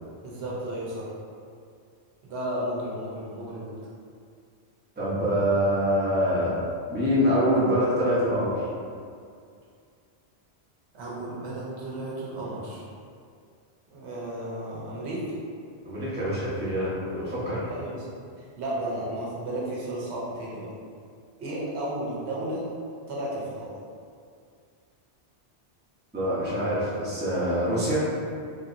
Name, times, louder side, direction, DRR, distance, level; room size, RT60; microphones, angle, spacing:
voice 1, 0.2-1.1 2.2-3.8 10.9-12.9 13.9-15.3 17.7-20.7 21.4-22.7 23.1-23.7, right 1 dB, 80° right, -6 dB, 1.0 m, -33 dB
voice 2, 5.0-6.6 6.9-8.7 15.8-17.7 26.1-28.0, equal, 10° right, -9 dB, 0.7 m, -25 dB
3.3 x 2.8 x 2.5 m, 2.3 s
omnidirectional pair, 1.1 m